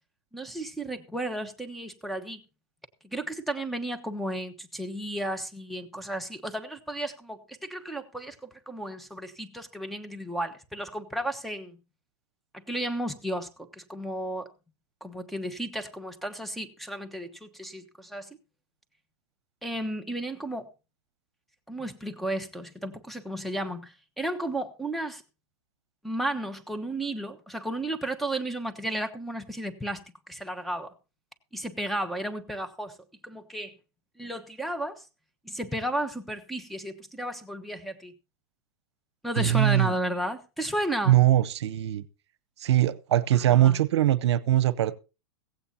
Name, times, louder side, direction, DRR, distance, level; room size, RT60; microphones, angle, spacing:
voice 1, 0.3-2.4 3.1-11.8 12.5-14.5 15.0-18.3 19.6-20.7 21.7-25.2 26.0-30.9 31.5-32.9 33.2-33.7 34.2-35.0 35.4-38.1 39.2-41.2 43.4-43.8, right 1 dB, ahead, 1.2 m, -33 dB
voice 2, 39.4-39.9 41.1-42.0 42.6-44.9, right 13 dB, 80° right, 0.8 m, -22 dB
16.0 x 16.0 x 2.8 m
hypercardioid pair, 125°, 14 cm